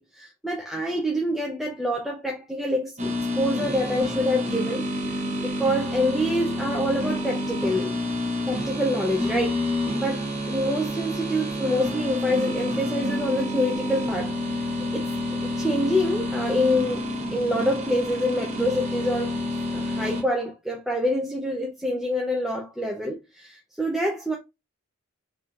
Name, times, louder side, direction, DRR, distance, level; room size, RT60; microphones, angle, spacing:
voice 1, 0.0-3.1 3.4-8.0 8.5-15.1 15.4-17.1 17.3-19.4 19.7-24.4, left 1 dB, ahead, 0.3 m, -26 dB
sound 1, 3.0-20.2, left 1 dB, 30° right, 0.7 m, -29 dB
3.5 x 2.6 x 2.3 m
head